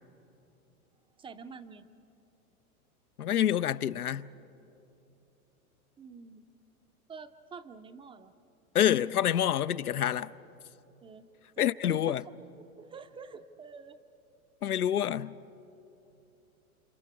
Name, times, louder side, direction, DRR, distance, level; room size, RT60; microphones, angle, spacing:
voice 1, 1.2-1.9 6.0-6.4 7.1-8.3 11.0-11.3 11.6-12.2 12.6-14.0, right 5 dB, 10° right, 0.5 m, -47 dB
voice 2, 3.2-4.3 8.7-10.3 11.6-12.2 14.6-15.4, left 10 dB, 85° left, 0.6 m, -27 dB
29.5 x 27.0 x 4.7 m
hypercardioid pair, 100°, 44 cm